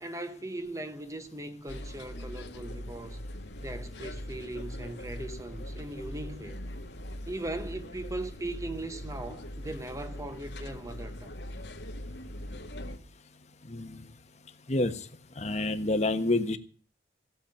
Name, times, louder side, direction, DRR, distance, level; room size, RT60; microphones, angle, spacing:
voice 1, 0.0-3.3 3.6-6.6 7.3-11.3, right 2 dB, 20° right, 1.1 m, -39 dB
sound 1, 1.7-13.0, left 1 dB, 75° left, 1.8 m, -41 dB
voice 2, 13.7-14.0 14.7-14.9 15.4-16.6, left 2 dB, 40° left, 1.3 m, -28 dB
16.0 x 7.4 x 8.7 m
head